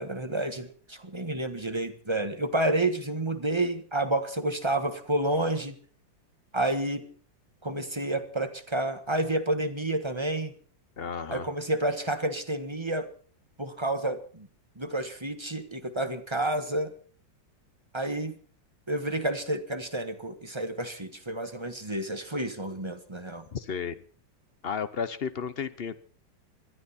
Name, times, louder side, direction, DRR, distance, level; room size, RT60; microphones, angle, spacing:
voice 1, 0.0-5.8 6.5-7.1 7.6-10.5 11.3-13.1 13.6-14.5 14.8-16.9 17.9-18.3 18.9-23.4, right 1 dB, 15° right, 8 dB, 1.2 m, -30 dB
voice 2, 11.0-11.5 23.5-24.0 24.6-26.0, left 6 dB, 45° left, 14 dB, 0.8 m, -33 dB
21.5 x 14.0 x 4.4 m, 0.43 s
omnidirectional pair, 2.1 m